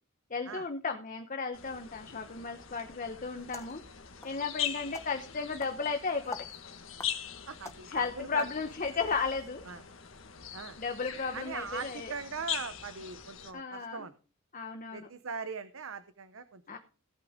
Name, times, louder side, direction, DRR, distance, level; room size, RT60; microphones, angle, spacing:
voice 1, 0.3-3.8 4.2-6.4 7.9-9.6 10.8-12.1 13.5-14.1 14.5-15.1 16.7-16.8, left 5 dB, 40° left, 6 dB, 1.0 m, -34 dB
sound 1, 1.5-13.5, left 10 dB, 75° left, 1.6 m, -42 dB
sound 2, 3.3-9.5, left 3 dB, 15° left, 1.1 m, -50 dB
voice 2, 7.5-8.5 9.7-9.8 10.5-10.8 11.3-14.1 14.9-16.8, right 5 dB, 80° right, 12 dB, 0.8 m, -40 dB
17.0 x 8.6 x 3.7 m, 0.35 s
head